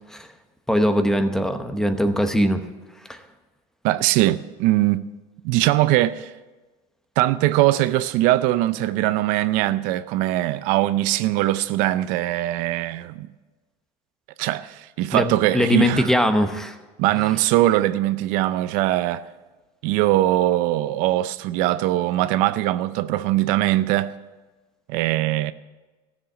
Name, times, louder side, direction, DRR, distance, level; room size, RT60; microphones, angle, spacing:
voice 1, 0.7-2.7 3.1-3.2 15.1-16.8, left 1 dB, 5° left, 0.9 m, -21 dB
voice 2, 3.8-5.0 5.4-6.3 7.2-13.3 14.4-16.1 17.0-19.3 19.8-24.1 24.9-25.5, right 15 dB, 70° right, 0.5 m, -21 dB
14.0 x 7.4 x 9.0 m
cardioid pair, 135°, 14 cm